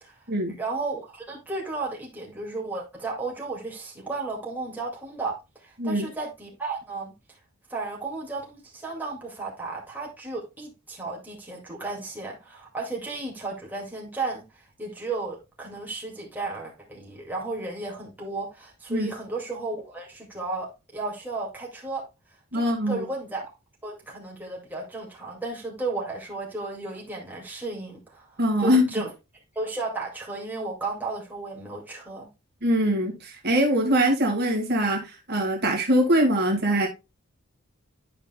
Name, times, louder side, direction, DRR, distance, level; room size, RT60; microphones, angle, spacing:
voice 1, 0.6-7.1 7.7-22.1 22.5-23.5 23.8-29.1 29.5-32.3, right 3 dB, 10° right, 2.1 m, -34 dB
voice 2, 22.5-23.0 28.4-28.8 32.6-36.9, equal, 50° right, 1.8 m, -23 dB
11.0 x 5.2 x 2.2 m
head